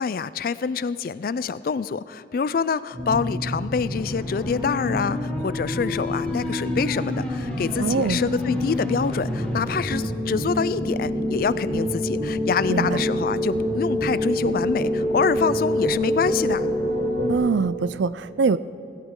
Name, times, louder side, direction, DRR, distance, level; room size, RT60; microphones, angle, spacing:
voice 1, 0.0-16.7, left 5 dB, 50° left, 17 dB, 0.3 m, -26 dB
sound 1, 2.9-17.3, left 1 dB, 65° right, 3.4 m, -27 dB
sound 2, 3.9-9.8, left 1 dB, 5° left, 3.1 m, -34 dB
voice 2, 7.8-8.2 12.7-13.0 17.3-18.6, right 4 dB, 80° right, 16 dB, 0.4 m, -23 dB
17.5 x 16.0 x 3.7 m, 2.8 s
head